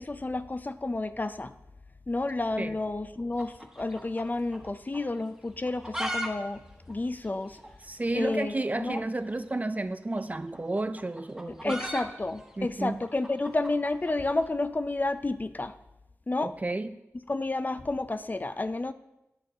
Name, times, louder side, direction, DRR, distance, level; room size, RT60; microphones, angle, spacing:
voice 1, 0.0-1.5 2.1-6.6 6.9-7.6 8.1-9.0 11.6-15.7 16.3-16.5 17.3-18.9, left 2 dB, 35° left, 11 dB, 0.4 m, -30 dB
sound 1, 3.3-4.7 4.9-5.0 5.6-6.3 6.6-6.7 6.9-7.0 7.6-7.7 8.9-9.1 10.2-14.4, equal, 10° right, 1.2 m, -37 dB
voice 2, 7.8-11.8 12.6-13.0 16.4-17.0, right 2 dB, 30° right, 12 dB, 0.4 m, -32 dB
8.9 x 6.4 x 3.8 m, 0.89 s
cardioid pair, 45°, 5 cm